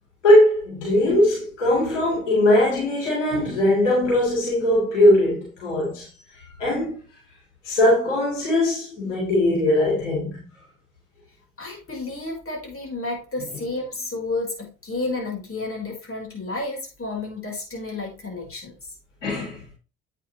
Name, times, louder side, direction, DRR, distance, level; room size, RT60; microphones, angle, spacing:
voice 1, 0.2-6.0 6.6-7.0 7.6-10.4 19.2-19.6, left 1 dB, 85° left, 3.9 m, -20 dB
voice 2, 11.6-18.7, left 2 dB, 35° left, 4.4 m, -31 dB
8.8 x 7.6 x 3.2 m
figure-of-eight pair, 40°, 36 cm